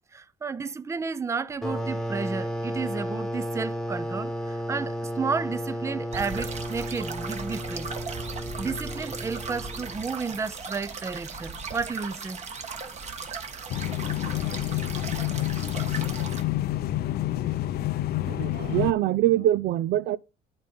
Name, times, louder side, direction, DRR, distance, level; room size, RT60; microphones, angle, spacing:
voice 1, 0.1-7.9 8.6-12.4, right 5 dB, 15° right, 0.5 m, -32 dB
sound 1, 1.6-10.0, equal, 5° left, 1.3 m, -33 dB
sound 2, 6.1-16.4, right 4 dB, 40° right, 1.6 m, -37 dB
sound 3, 13.7-18.9, left 14 dB, 70° left, 0.7 m, -28 dB
voice 2, 18.3-20.2, right 13 dB, 70° right, 0.5 m, -24 dB
12.0 x 4.4 x 5.3 m
cardioid pair, 110°, 17 cm